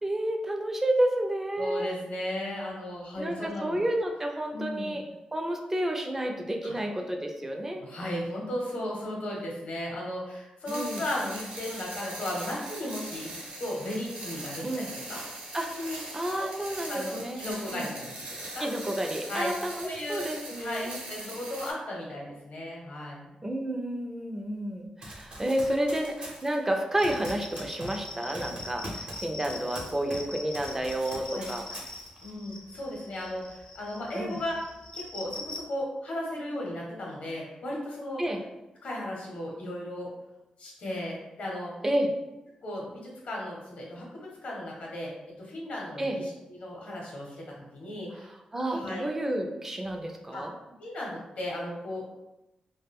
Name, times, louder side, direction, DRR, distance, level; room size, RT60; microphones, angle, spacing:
voice 1, 0.0-2.0 3.2-5.0 5.3-7.8 10.7-11.0 14.6-14.9 15.5-17.4 17.7-17.9 18.6-21.0 23.4-31.6 34.2-34.4 38.2-38.4 41.8-42.1 46.0-46.2 48.5-50.5, right 1 dB, 15° right, 3 dB, 0.4 m, -30 dB
voice 2, 1.6-3.8 4.5-5.0 6.6-6.8 7.8-15.2 15.8-16.0 16.3-16.5 16.9-18.3 18.5-18.7 19.3-19.5 19.8-20.3 20.5-23.3 31.3-31.4 32.2-34.6 34.9-38.2 38.8-40.1 40.6-41.7 42.6-46.3 46.6-48.3 48.7-49.1 50.3-50.4 50.8-52.1, left 1 dB, 75° left, -2 dB, 0.7 m, -35 dB
sound 1, 10.7-21.7, right 1 dB, 70° right, 0.8 m, -41 dB
Run, 25.0-30.3 30.5-32.3, right 1 dB, 45° right, 0.8 m, -43 dB
sound 2, 26.9-35.6, left 2 dB, 40° left, 0.4 m, -43 dB
2.2 x 2.1 x 3.4 m, 0.96 s
cardioid pair, 100°, 2 cm